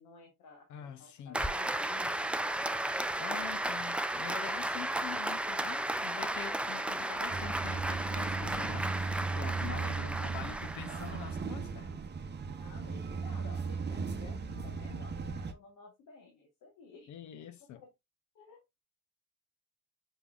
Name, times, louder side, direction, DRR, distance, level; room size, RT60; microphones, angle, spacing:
voice 1, 0.0-2.6 6.4-6.6 9.5-10.4 12.6-17.1 17.7-17.9 18.3-18.6, left 4 dB, 90° left, 1.2 m, -54 dB
voice 2, 0.7-1.5 3.2-12.0 17.1-17.8, left 9 dB, 75° left, 0.7 m, -45 dB
Applause, 1.3-11.4, right 1 dB, 5° right, 0.3 m, -34 dB
sound 1, 7.3-15.5, right 4 dB, 35° right, 0.7 m, -37 dB
5.3 x 3.6 x 2.4 m
cardioid pair, 90°, 30 cm